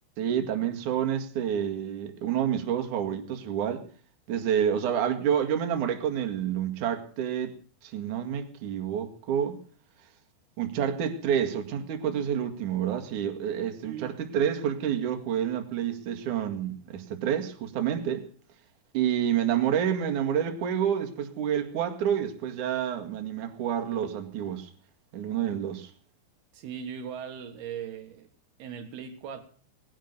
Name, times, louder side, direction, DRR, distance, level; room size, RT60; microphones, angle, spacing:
voice 1, 0.2-3.8 4.3-7.5 7.8-9.6 10.6-18.3 18.9-24.7 25.1-25.9, right 9 dB, 55° right, 3.2 m, -28 dB
voice 2, 13.8-14.1 26.5-28.3 28.6-29.4, right 8 dB, 80° right, 3.6 m, -39 dB
20.0 x 10.5 x 6.7 m
omnidirectional pair, 4.5 m